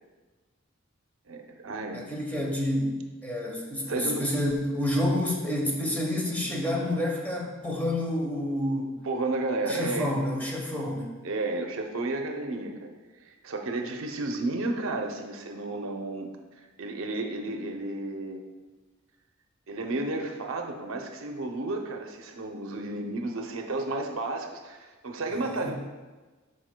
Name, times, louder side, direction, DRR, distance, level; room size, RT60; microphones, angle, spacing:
voice 1, 1.3-2.1 3.9-4.2 9.0-10.1 11.2-12.9 13.2-16.3 16.6-18.4 19.7-25.7, right 2 dB, 70° right, 3 dB, 0.6 m, -32 dB
voice 2, 1.9-9.0 9.7-11.2 25.4-25.7, left 1 dB, 10° left, -1 dB, 0.9 m, -29 dB
11.0 x 4.2 x 2.2 m, 1.3 s
head